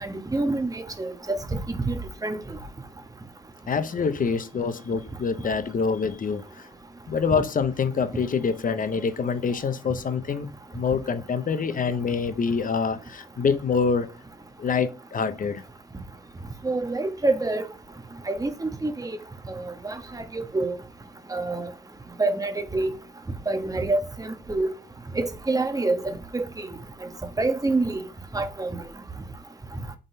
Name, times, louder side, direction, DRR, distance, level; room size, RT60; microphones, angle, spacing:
voice 1, 0.0-1.4 1.7-2.4 16.6-17.6 18.3-19.2 19.8-19.9 20.3-20.7 21.3-21.7 22.2-22.9 23.5-24.7 25.2-26.4 27.4-28.0 28.3-28.8, right 2 dB, 15° right, 1.5 m, -26 dB
voice 2, 3.7-6.7 7.1-14.1 14.6-15.6, left 5 dB, 45° left, 1.1 m, -26 dB
7.6 x 4.0 x 5.6 m
cardioid pair, 90°, 20 cm